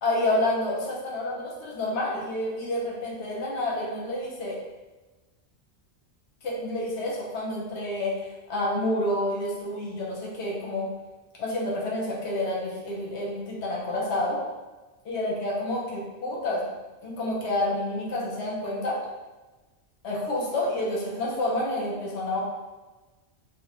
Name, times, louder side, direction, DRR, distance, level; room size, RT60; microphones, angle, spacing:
voice 1, 0.0-4.6 6.4-10.9 11.4-14.4 15.0-16.7 17.0-19.0 20.0-22.4, left 1 dB, 75° left, -4 dB, 0.9 m, -29 dB
2.4 x 2.1 x 2.8 m, 1.2 s
omnidirectional pair, 1.2 m